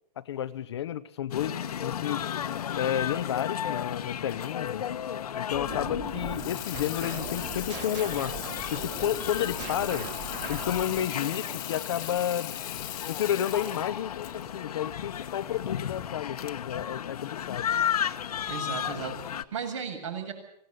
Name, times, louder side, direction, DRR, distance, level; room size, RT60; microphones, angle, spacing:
voice 1, 0.2-2.3 2.7-4.9 5.4-8.3 8.7-10.1 10.5-12.5 13.1-17.7, left 10 dB, 40° left, 13 dB, 0.8 m, -31 dB
sound 1, 1.3-19.4, left 9 dB, 65° left, 1.4 m, -34 dB
sound 2, 5.5-11.7, right 5 dB, 20° right, 3.1 m, -40 dB
Water tap faucet / Sink (filling or washing), 6.1-15.7, left 12 dB, 20° left, 2.3 m, -40 dB
voice 2, 18.5-20.3, right 6 dB, 50° right, 6 dB, 7.6 m, -35 dB
25.0 x 18.0 x 8.0 m, 0.72 s
hypercardioid pair, 180°, 21 cm